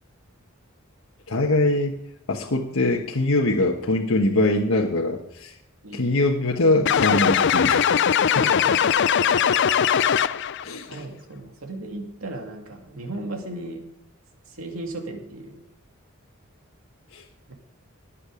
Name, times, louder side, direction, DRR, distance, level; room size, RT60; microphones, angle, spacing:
voice 1, 1.3-2.0 2.3-5.5 5.9-8.4 10.6-10.9 17.1-17.2, left 2 dB, 80° left, 0 dB, 1.3 m, -23 dB
sound 1, 6.9-10.6, left 8 dB, 60° left, 0.5 m, -20 dB
voice 2, 8.4-8.8 10.9-13.8 14.5-15.6 17.5-17.6, right 2 dB, 85° right, 2 dB, 2.5 m, -36 dB
20.5 x 7.5 x 5.1 m, 0.74 s
head